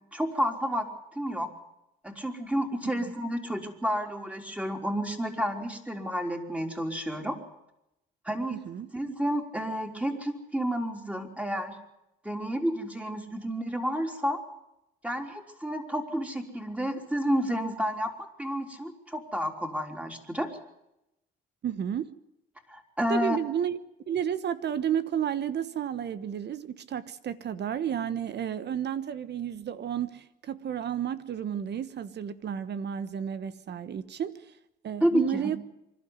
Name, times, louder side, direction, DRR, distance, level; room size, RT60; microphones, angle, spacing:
voice 1, 0.1-0.9 1.2-1.5 2.0-7.4 8.3-8.6 8.9-11.8 12.2-14.4 15.0-18.1 18.4-20.5 22.7-23.4 35.0-35.5, equal, 5° right, 3.8 m, -30 dB
voice 2, 8.5-8.9 21.6-22.1 23.1-23.8 24.1-34.5 34.8-35.6, right 9 dB, 60° right, 1.2 m, -32 dB
25.5 x 12.0 x 9.6 m
cardioid pair, 90°, 20 cm